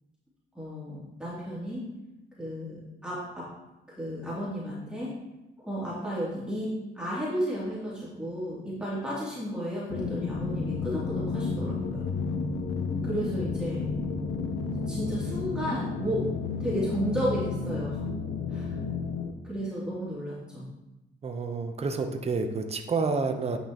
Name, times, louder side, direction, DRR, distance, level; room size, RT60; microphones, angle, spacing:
voice 1, 0.5-1.9 2.4-3.5 4.0-5.2 5.6-12.1 13.0-13.8 14.8-16.3 16.6-18.0 18.5-18.7 19.4-20.7, equal, 5° right, -9 dB, 2.8 m, -33 dB
sound 1, 9.9-19.3, left 4 dB, 85° left, 0.8 m, -32 dB
voice 2, 21.2-23.6, right 4 dB, 30° right, 5 dB, 0.8 m, -29 dB
9.7 x 5.5 x 2.9 m, 0.96 s
cardioid pair, 90°, 20 cm